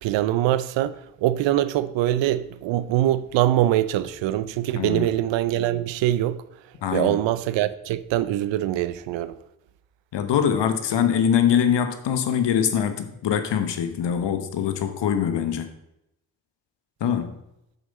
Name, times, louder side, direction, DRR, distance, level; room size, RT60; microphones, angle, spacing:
voice 1, 0.0-6.4 6.9-9.3, right 13 dB, 80° right, 0.6 m, -23 dB
voice 2, 4.8-5.1 6.8-7.2 10.1-15.7 17.0-17.4, left 8 dB, 70° left, 1.1 m, -23 dB
8.0 x 6.3 x 4.1 m
supercardioid pair, 50°, 44 cm